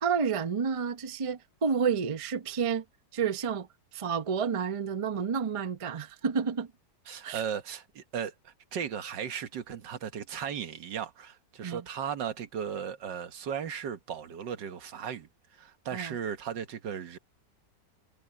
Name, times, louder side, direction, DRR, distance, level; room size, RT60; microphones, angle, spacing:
voice 1, 0.0-2.8 3.1-3.7 3.9-6.7 7.2-7.4 11.6-11.8 15.9-16.2, right 6 dB, 45° right, 0.4 m, -30 dB
voice 2, 7.1-17.2, right 8 dB, 80° right, 1.9 m, -36 dB
omnidirectional pair, 1.9 m